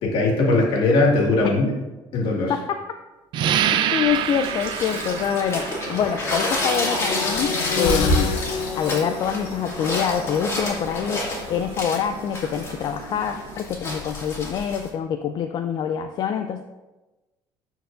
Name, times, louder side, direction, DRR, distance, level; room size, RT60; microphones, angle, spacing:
voice 1, 0.0-1.6 2.1-2.5, left 2 dB, 65° left, -1 dB, 1.9 m, -19 dB
voice 2, 2.5-2.8 3.7-8.3 8.7-16.6, left 8 dB, 50° left, 7 dB, 0.4 m, -26 dB
sound 1, 3.3-13.6, right 9 dB, 60° right, 0.4 m, -30 dB
sound 2, 4.1-14.1, left 3 dB, 90° left, 0.9 m, -31 dB
sound 3, 4.1-14.9, left 1 dB, 30° left, 2.2 m, -30 dB
13.5 x 4.5 x 2.6 m, 1.1 s
cardioid pair, 130°, 9 cm